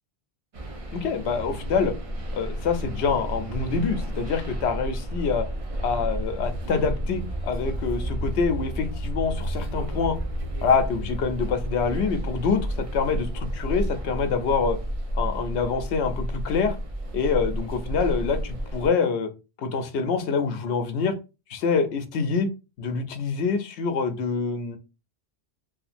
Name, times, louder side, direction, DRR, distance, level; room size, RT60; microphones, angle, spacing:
sound 1, 0.5-18.9, equal, 40° right, 0.6 m, -31 dB
voice 1, 0.9-1.9 2.3-5.5 5.8-10.2 10.6-14.8 15.1-16.8 17.1-19.3 19.6-21.1 21.5-22.5 22.8-24.8, left 5 dB, 85° left, 8 dB, 0.9 m, -26 dB
3.5 x 2.5 x 2.5 m, 0.29 s
omnidirectional pair, 1.1 m